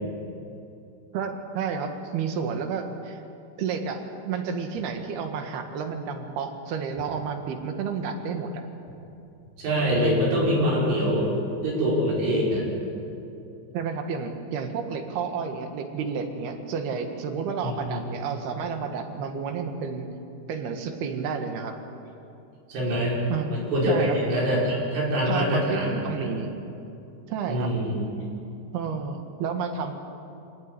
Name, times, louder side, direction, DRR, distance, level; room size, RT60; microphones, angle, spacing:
voice 1, 1.1-3.2 3.6-8.6 13.7-20.1 20.5-21.7 23.3-23.5 23.8-24.2 25.3-26.5 27.3-27.8 28.7-30.0, right 6 dB, 65° right, 5 dB, 3.4 m, -31 dB
voice 2, 9.6-11.3 11.6-12.6 17.6-18.0 22.7-23.2 23.5-26.0 27.5-28.0, equal, 80° right, -4 dB, 7.9 m, -24 dB
26.5 x 17.5 x 9.9 m, 2.7 s
omnidirectional pair, 5.5 m